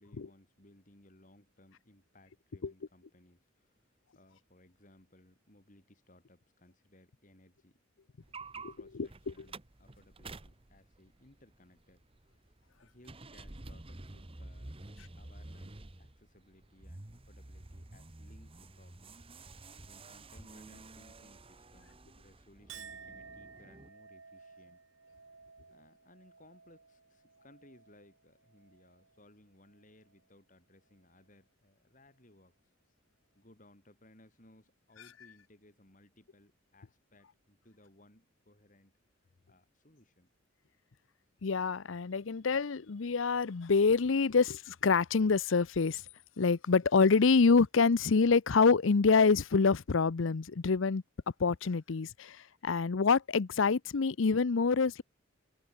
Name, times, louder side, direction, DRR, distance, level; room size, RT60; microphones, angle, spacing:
voice 1, 0.0-7.8 8.4-12.0 12.8-19.2 19.9-24.8 25.7-32.5 33.3-38.9 39.5-40.3, left 1 dB, 40° left, 4.1 m, -62 dB
sound 1, 8.2-23.9, right 2 dB, 30° right, 1.3 m, -50 dB
voice 2, 8.6-9.3 41.4-46.0 46.4-51.0 51.4-55.0, left 4 dB, 75° left, 0.6 m, -26 dB
Chink clink, 22.7-29.3 29.6-30.2, right 6 dB, 80° right, 4.4 m, -55 dB
head